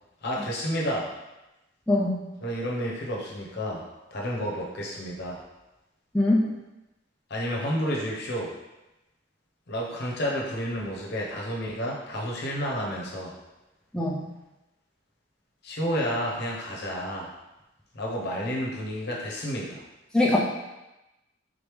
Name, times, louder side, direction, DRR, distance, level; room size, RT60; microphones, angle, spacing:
voice 1, 0.2-1.1 2.4-3.8 4.1-5.4 7.3-8.5 9.7-13.4 15.6-17.3 17.9-19.8, equal, 55° left, -2 dB, 0.8 m, -30 dB
voice 2, 1.9-2.2 6.1-6.4 13.9-14.2 20.1-20.4, left 2 dB, 5° left, -4 dB, 0.4 m, -22 dB
3.8 x 3.2 x 3.4 m, 0.99 s
head